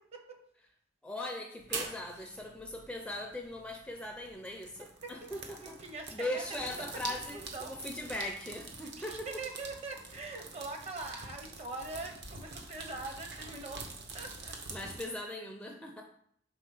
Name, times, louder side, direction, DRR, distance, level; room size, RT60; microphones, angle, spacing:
voice 1, 1.0-5.8 6.1-9.3 14.7-16.0, left 1 dB, 5° left, 2 dB, 0.5 m, -40 dB
sound 1, 1.6-15.0, right 3 dB, 60° right, 1.0 m, -45 dB
voice 2, 5.2-6.9 7.3-7.7 8.8-13.9 14.1-14.9, right 3 dB, 35° right, 3 dB, 0.9 m, -43 dB
5.0 x 3.5 x 5.4 m, 0.68 s
head